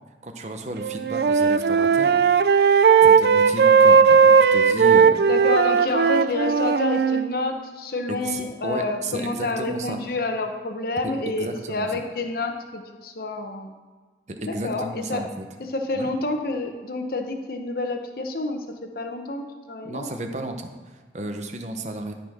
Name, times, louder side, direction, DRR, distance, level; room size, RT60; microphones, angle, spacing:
voice 1, 0.2-2.2 3.0-5.2 8.1-10.0 11.4-11.9 14.3-15.4 15.9-16.1 19.8-22.1, right 1 dB, 40° right, 5 dB, 0.9 m, -33 dB
Wind instrument woodwind instrument, 0.8-7.2, right 6 dB, 60° right, 0.4 m, -17 dB
voice 2, 5.3-13.7 14.5-15.2 15.6-20.2, left 2 dB, 55° left, 4 dB, 0.9 m, -28 dB
12.5 x 4.4 x 5.9 m, 1.4 s
head